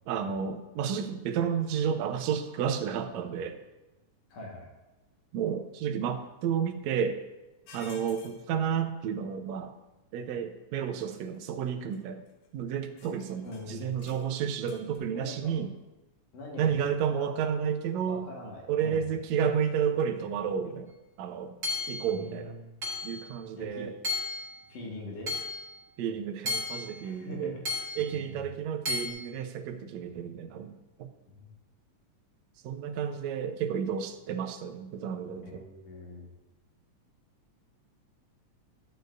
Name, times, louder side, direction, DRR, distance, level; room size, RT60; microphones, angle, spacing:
voice 1, 0.1-3.6 5.3-7.2 7.7-9.7 10.1-12.2 12.5-15.7 16.6-18.2 18.7-20.9 21.2-21.5 21.9-22.6 23.0-23.9 26.0-27.5 28.0-30.7 31.0-31.1 32.6-35.6, right 7 dB, 75° right, 6 dB, 1.8 m, -31 dB
voice 2, 4.3-4.7 13.4-14.1 15.1-15.6 16.3-16.8 17.1-17.3 18.1-19.1 22.1-22.7 23.6-23.9 24.7-25.3 27.0-27.7 28.0-28.4 30.0-30.2 31.3-31.5 35.4-36.3, left 2 dB, 60° left, -2 dB, 2.7 m, -43 dB
sound 1, 7.7-8.4 11.1-11.4 11.9-12.0 12.3-12.5 13.0-15.0, left 3 dB, 85° left, 2.7 m, -53 dB
Hammer / Chink clink, 21.6-22.1 22.8-23.2 24.0-24.5 25.3-25.6 26.5-26.9 27.7-28.1 28.9-29.1, left 3 dB, 35° right, 1.9 m, -32 dB
12.0 x 9.1 x 2.6 m, 1.1 s
omnidirectional pair, 3.5 m